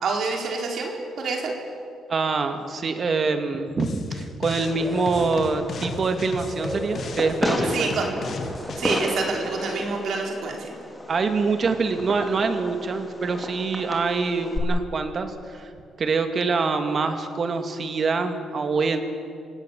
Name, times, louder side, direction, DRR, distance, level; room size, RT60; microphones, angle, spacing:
voice 1, 0.0-1.5 7.7-8.0 8.8-10.7, right 4 dB, 65° right, 1 dB, 4.3 m, -27 dB
voice 2, 2.1-8.1 11.1-15.7 16.0-19.0, right 4 dB, 45° right, 7 dB, 2.3 m, -25 dB
sound 1, 3.8-4.8 5.1-8.8, left 4 dB, 55° left, 2.3 m, -35 dB
Fireworks, 4.6-14.6, left 1 dB, 10° left, 3.4 m, -33 dB
sound 2, 4.6-5.5 6.5-7.6 8.5-9.5, equal, 10° right, 7.5 m, -37 dB
27.0 x 17.0 x 7.3 m, 2.3 s
cardioid pair, 90°, 0 cm